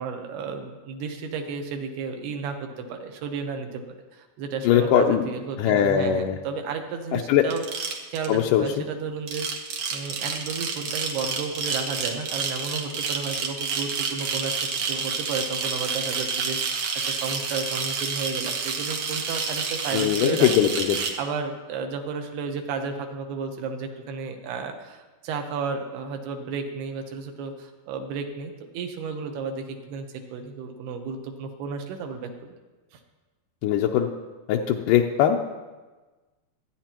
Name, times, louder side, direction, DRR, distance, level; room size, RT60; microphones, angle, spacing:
voice 1, 0.0-7.6 8.1-9.5 9.9-20.7 21.2-32.3 32.9-33.0, right 5 dB, 85° right, 5 dB, 3.1 m, -33 dB
voice 2, 4.7-5.2 5.6-6.4 7.1-7.5 8.3-8.8 19.9-21.0 33.6-34.1 34.5-35.4, left 9 dB, 85° left, 2 dB, 1.9 m, -21 dB
sound 1, 7.5-8.4 9.2-21.1, right 5 dB, 65° right, 1.8 m, -29 dB
25.0 x 9.3 x 2.9 m, 1.2 s
omnidirectional pair, 4.5 m